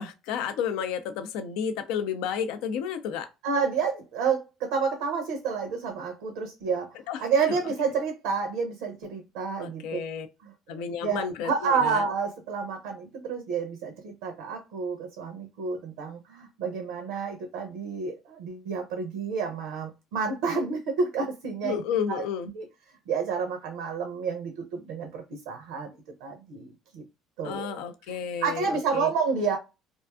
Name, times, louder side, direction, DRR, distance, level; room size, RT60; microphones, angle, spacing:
voice 1, 0.0-3.3 7.1-7.2 9.6-10.3 10.7-12.0 21.6-22.5 27.4-29.1, left 7 dB, 70° left, 0.4 m, -31 dB
voice 2, 3.4-10.0 10.4-10.5 11.0-21.8 22.1-22.2 22.5-22.7 23.1-26.0 26.2-27.0 27.4-27.8 28.4-29.6, right 5 dB, 75° right, 0.5 m, -29 dB
2.6 x 2.3 x 2.2 m
hypercardioid pair, 65°, 0 cm